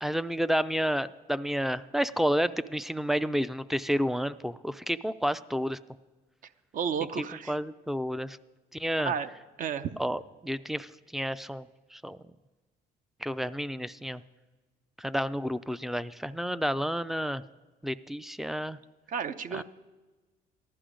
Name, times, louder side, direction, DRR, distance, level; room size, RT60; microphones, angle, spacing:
voice 1, 0.0-5.8 7.2-8.4 8.7-9.1 10.0-11.7 11.9-12.2 13.2-14.2 15.0-17.4 17.8-18.8 19.5-19.6, equal, ahead, 16 dB, 0.3 m, -30 dB
voice 2, 6.7-7.6 8.9-9.3 9.6-9.9 19.1-19.6, right 7 dB, 50° right, 12 dB, 0.6 m, -32 dB
15.0 x 11.5 x 5.1 m, 1.3 s
cardioid pair, 110°, 17 cm